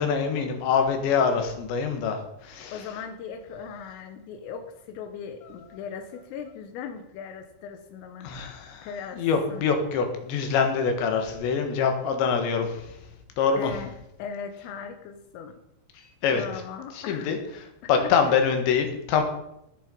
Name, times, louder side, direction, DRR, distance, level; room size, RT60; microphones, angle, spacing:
voice 1, 0.0-2.7 8.2-8.9 9.1-12.9 13.4-13.7 16.2-16.4 16.9-17.4 17.9-19.2, left 6 dB, 70° left, 5 dB, 3.7 m, -24 dB
voice 2, 2.7-8.3 8.8-9.7 13.6-15.6 16.3-17.4 17.8-18.3, left 6 dB, 85° left, 7 dB, 3.6 m, -39 dB
19.5 x 6.9 x 5.3 m, 0.82 s
omnidirectional pair, 5.8 m